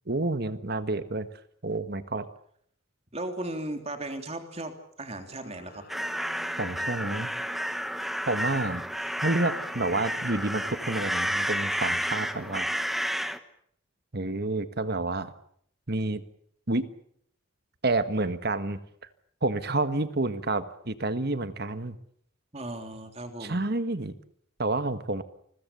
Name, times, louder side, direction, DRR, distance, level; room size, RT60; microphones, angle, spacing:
voice 1, 0.1-1.3 1.6-2.3 6.6-7.3 8.3-8.8 9.2-12.7 14.1-15.3 15.9-16.2 16.7-16.9 17.8-18.8 19.4-22.0 23.4-24.1 24.6-25.2, right 2 dB, 50° right, 11 dB, 1.5 m, -29 dB
voice 2, 3.1-5.8 22.5-23.6, right 1 dB, 30° right, 6 dB, 3.2 m, -36 dB
sound 1, 5.1-7.9 9.0-11.6, left 2 dB, 50° left, 6.3 m, -53 dB
sound 2, 5.9-13.4, equal, ahead, 1.2 m, -31 dB
29.0 x 21.5 x 7.0 m, 0.67 s
head